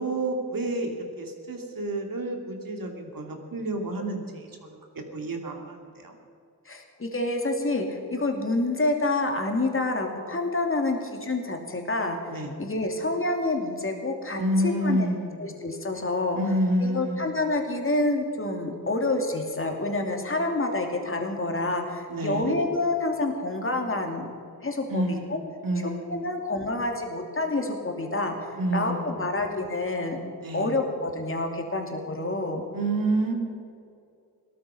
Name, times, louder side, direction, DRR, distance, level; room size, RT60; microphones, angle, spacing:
voice 1, 0.0-4.8 5.1-6.1 12.3-12.5 14.4-15.4 16.3-17.3 22.1-22.6 24.9-26.3 28.6-29.3 30.4-30.7 32.7-33.3, right 1 dB, 60° right, 3 dB, 2.7 m, -29 dB
voice 2, 6.7-12.2 12.6-15.1 15.4-16.4 16.8-24.3 24.6-25.0 25.3-25.4 26.1-30.2 30.5-32.6, left 2 dB, 35° left, 3 dB, 2.6 m, -28 dB
18.0 x 13.0 x 5.7 m, 2.5 s
cardioid pair, 70°, 38 cm